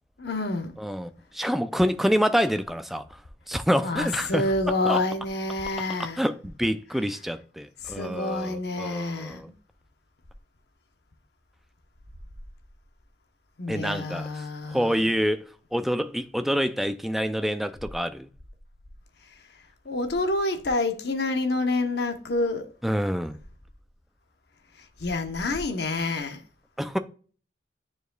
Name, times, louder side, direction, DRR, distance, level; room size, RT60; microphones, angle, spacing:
voice 1, 0.2-0.7 3.8-6.2 7.8-9.4 13.6-15.0 19.8-22.7 25.0-26.4, left 2 dB, 60° left, 0.9 m, -28 dB
voice 2, 0.8-3.2 3.5-4.5 4.9-5.0 6.0-9.5 13.7-18.3 22.8-23.4 26.8-27.0, equal, ahead, 0.3 m, -27 dB
9.0 x 4.9 x 2.3 m
head